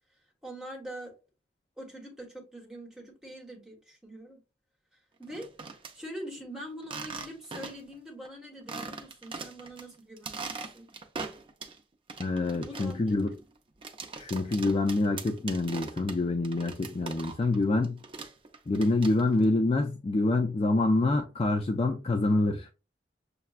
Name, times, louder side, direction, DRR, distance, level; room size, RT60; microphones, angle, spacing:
voice 1, 0.4-1.1 1.8-4.4 5.2-5.5 5.9-10.9 12.6-13.4, equal, 5° right, 1.2 m, -43 dB
sound 1, 5.2-5.9 6.8-7.9 8.2-8.3 8.7-9.8 10.2-11.8 12.1-17.6 17.8-19.4, right 4 dB, 30° right, 0.5 m, -41 dB
voice 2, 12.2-13.4 14.1-18.0 18.7-22.7, left 2 dB, 30° left, 0.4 m, -26 dB
6.6 x 2.2 x 2.4 m
head